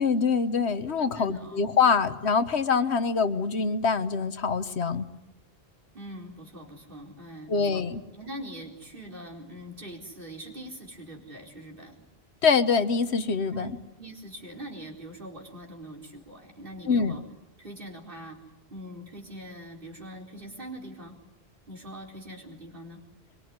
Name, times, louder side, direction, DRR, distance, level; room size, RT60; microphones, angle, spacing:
voice 1, 0.0-5.0 7.5-8.0 12.4-13.7 16.9-17.2, left 5 dB, 80° left, 11 dB, 1.5 m, -24 dB
voice 2, 1.0-1.6 5.9-7.9 8.1-12.0 13.5-17.2 17.6-18.4 18.7-21.2 21.7-23.0, right 1 dB, 55° right, 1 dB, 4.5 m, -43 dB
23.5 x 23.0 x 9.6 m, 0.90 s
omnidirectional pair, 1.1 m